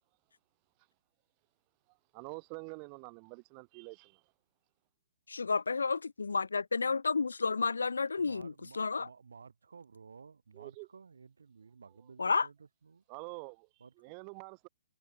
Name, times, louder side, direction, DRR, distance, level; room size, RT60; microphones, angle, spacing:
voice 1, 2.1-4.2 10.5-10.9 13.1-13.7 14.0-14.7, right 40 dB or more, 30° right, 0.9 m, -46 dB
voice 2, 5.3-9.1 12.2-12.5, left 4 dB, 85° left, 0.4 m, -31 dB
voice 3, 8.2-13.0 13.8-13.9, right 5 dB, 80° right, 1.7 m, -54 dB
hypercardioid pair, 135°, 0 cm